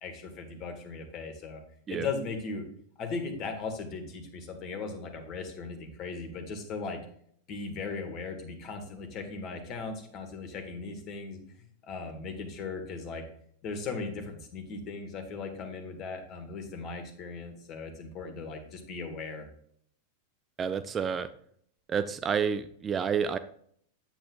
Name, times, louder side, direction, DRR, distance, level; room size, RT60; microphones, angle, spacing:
voice 1, 0.0-1.6 1.9-2.6 3.0-7.0 7.5-13.2 13.6-19.4, left 4 dB, 35° left, 6 dB, 1.6 m, -38 dB
voice 2, 20.6-21.3 21.9-23.4, right 7 dB, 20° right, 11 dB, 0.4 m, -29 dB
8.9 x 7.9 x 2.3 m, 0.64 s
figure-of-eight pair, 90°, 0 cm